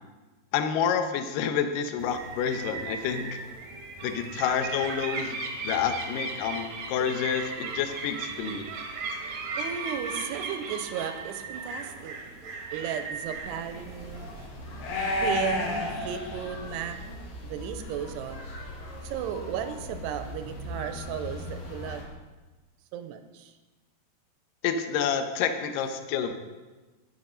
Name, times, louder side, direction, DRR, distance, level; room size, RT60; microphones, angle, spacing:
voice 1, 0.5-3.4 4.0-5.4 5.6-8.7 24.6-26.3, left 7 dB, 80° left, 7 dB, 1.9 m, -28 dB
sound 1, 2.0-14.5, right 4 dB, 65° right, 1.8 m, -37 dB
voice 2, 9.6-12.2 12.7-14.3 15.2-17.0 17.4-18.4 19.0-22.1 22.9-23.5, right 9 dB, 85° right, 8 dB, 2.7 m, -35 dB
sound 2, 13.2-22.0, left 1 dB, 60° left, 3.5 m, -35 dB
10.5 x 10.0 x 5.2 m, 1.2 s
omnidirectional pair, 5.0 m